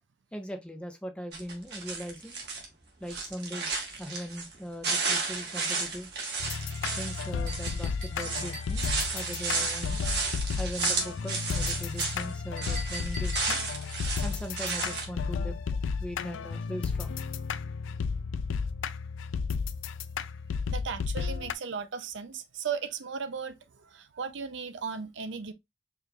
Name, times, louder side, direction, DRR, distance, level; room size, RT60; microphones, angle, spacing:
voice 1, 0.3-2.4 3.0-6.1 7.0-8.9 9.1-10.0 10.6-13.6 14.2-15.6 16.0-17.2, equal, 5° left, 0.5 m, -40 dB
sound 1, 1.3-2.6 3.0-4.5 4.8-12.3 12.6-15.0, right 4 dB, 55° right, 1.3 m, -33 dB
sound 2, 6.4-21.5, left 5 dB, 80° left, 0.4 m, -33 dB
Chink clink, 7.5-9.0 12.6-13.8, right 1 dB, 40° right, 0.9 m, -44 dB
voice 2, 20.7-25.5, right 6 dB, 75° right, 0.5 m, -36 dB
4.7 x 2.4 x 3.2 m
head